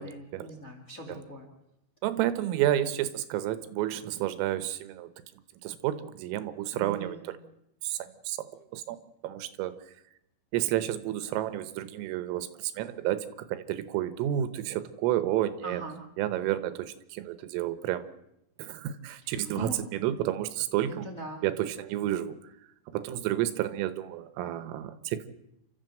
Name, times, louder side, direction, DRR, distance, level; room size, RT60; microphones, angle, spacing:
voice 1, 0.0-1.5 6.7-7.2 15.6-16.0 19.2-19.8 20.9-21.4, right 1 dB, 25° left, 1 dB, 1.9 m, -41 dB
voice 2, 2.0-5.1 5.6-7.4 7.8-8.4 8.7-9.0 9.2-9.7 10.5-15.8 16.2-18.1 18.6-21.1 21.4-22.4 22.9-25.3, right 13 dB, 80° right, 13 dB, 3.6 m, -30 dB
29.5 x 13.0 x 7.7 m, 0.84 s
omnidirectional pair, 6.0 m